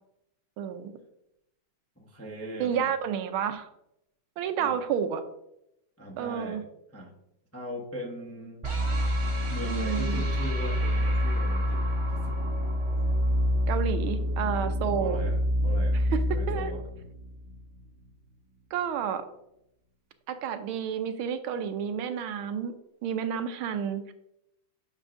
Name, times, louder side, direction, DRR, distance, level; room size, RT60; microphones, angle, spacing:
voice 1, 0.6-0.9 2.6-3.7 4.4-5.2 6.2-6.6 9.6-10.2 13.7-15.2 15.9-16.7 18.7-19.3 20.3-22.7 23.0-24.1, right 8 dB, 75° right, 9 dB, 1.4 m, -30 dB
voice 2, 2.0-2.9 4.6-4.8 6.0-6.6 6.9-7.1 7.5-8.7 9.5-11.8 12.1-12.4 15.0-16.0 16.3-16.8, equal, 15° left, -2 dB, 0.5 m, -39 dB
sound 1, 8.6-17.7, equal, 50° right, 0.3 m, -27 dB
9.8 x 6.4 x 2.6 m, 0.82 s
omnidirectional pair, 2.4 m